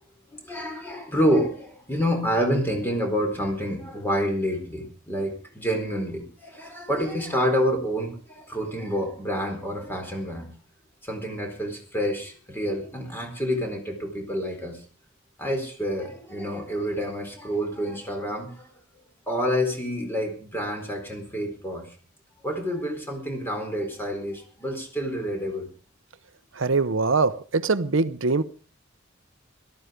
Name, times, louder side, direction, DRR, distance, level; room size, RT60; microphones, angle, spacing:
voice 1, 0.3-10.5 11.0-14.8 15.4-18.7 19.3-21.8 22.4-25.7, equal, 10° left, 3 dB, 4.2 m, -28 dB
voice 2, 26.6-28.4, right 4 dB, 65° right, 14 dB, 0.9 m, -23 dB
17.5 x 13.5 x 5.1 m, 0.38 s
head